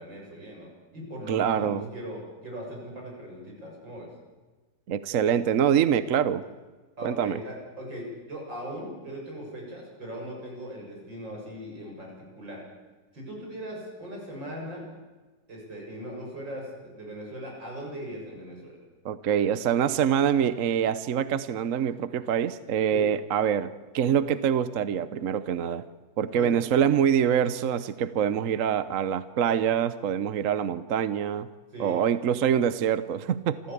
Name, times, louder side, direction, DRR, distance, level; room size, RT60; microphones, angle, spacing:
voice 1, 0.0-4.1 7.0-12.1 12.4-12.6 13.1-14.9 15.5-18.8 22.9-23.0 26.3-26.5 31.7-32.0 33.6-33.7, equal, 75° right, -1 dB, 7.3 m, -39 dB
voice 2, 1.3-1.9 4.9-6.4 7.0-7.4 19.0-25.8 26.2-31.5 31.8-33.6, right 8 dB, 55° right, 14 dB, 1.0 m, -25 dB
26.5 x 14.5 x 8.4 m, 1.3 s
omnidirectional pair, 2.0 m